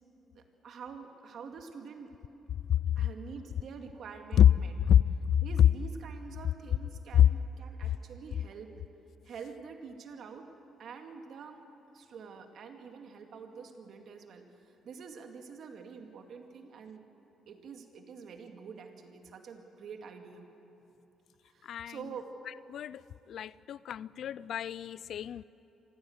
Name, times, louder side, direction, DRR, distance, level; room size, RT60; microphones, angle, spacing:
voice 1, 0.4-2.1 3.0-4.7 5.4-8.7 9.2-10.5 10.8-11.6 11.9-17.0 17.5-20.5 21.5-22.3, right 6 dB, 65° right, 4 dB, 2.2 m, -46 dB
voice 2, 21.6-22.0 22.7-23.0 23.3-25.4, left 10 dB, 70° left, 20 dB, 0.4 m, -26 dB
26.5 x 15.5 x 8.0 m, 2.9 s
cardioid pair, 90°, 0 cm